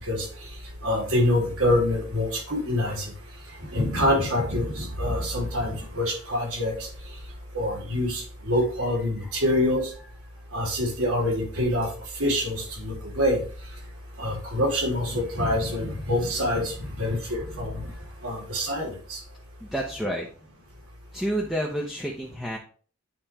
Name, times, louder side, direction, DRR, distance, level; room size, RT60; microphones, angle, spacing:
voice 1, 0.8-3.1 3.7-6.9 7.5-9.9 10.5-11.9 12.2-13.4 14.2-17.9 18.2-19.2, left 1 dB, 85° right, -1 dB, 2.7 m, -25 dB
voice 2, 19.6-20.3 21.1-22.6, equal, ahead, -3 dB, 0.7 m, -30 dB
8.9 x 3.1 x 4.3 m, 0.42 s
head